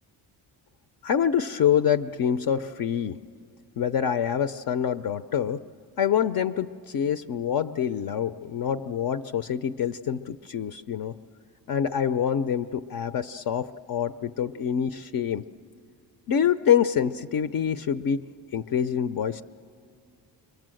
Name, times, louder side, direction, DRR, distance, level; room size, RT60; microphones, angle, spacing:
voice 1, 1.0-3.2 3.8-5.6 6.0-11.2 11.7-15.4 16.3-18.3 18.5-19.4, left 8 dB, 55° left, 10 dB, 0.5 m, -26 dB
29.0 x 23.0 x 7.6 m, 2.3 s
cardioid pair, 125°, 42 cm